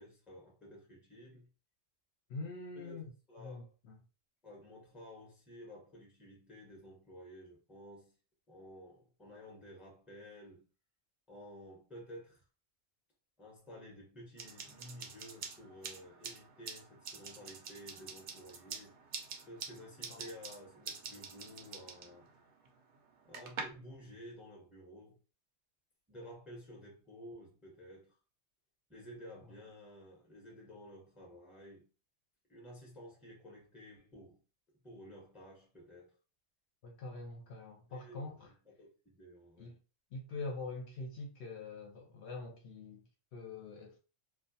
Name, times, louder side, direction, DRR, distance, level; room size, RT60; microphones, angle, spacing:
voice 1, 0.0-1.5 2.8-3.0 3.3-3.7 4.4-8.2 8.5-10.7 11.3-12.4 13.4-18.9 19.5-22.3 23.2-25.2 26.1-28.1 28.9-31.9 32.5-34.4 34.8-36.2 37.9-38.3 38.7-39.8, equal, ahead, 0.6 m, -53 dB
voice 2, 2.3-3.0 3.4-4.0 20.1-20.3 29.4-29.5 36.8-38.5 39.6-39.8 40.1-44.0, left 3 dB, 65° left, 0.8 m, -44 dB
sound 1, 14.4-23.6, right 5 dB, 60° right, 0.6 m, -47 dB
2.2 x 2.2 x 2.6 m
omnidirectional pair, 1.3 m